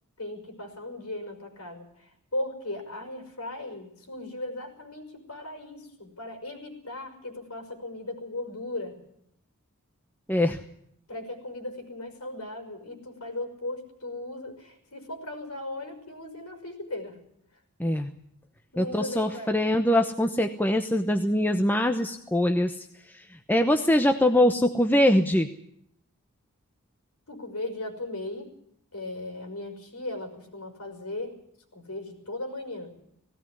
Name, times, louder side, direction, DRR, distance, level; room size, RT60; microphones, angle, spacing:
voice 1, 0.2-9.0 11.1-17.2 18.7-19.6 27.3-28.5 28.9-31.4 31.7-32.9, left 2 dB, 75° left, 3 dB, 5.5 m, -37 dB
voice 2, 10.3-10.6 17.8-18.1 18.8-22.7 23.5-25.5, left 1 dB, 10° left, 5 dB, 0.9 m, -23 dB
18.5 x 17.0 x 9.7 m, 0.73 s
head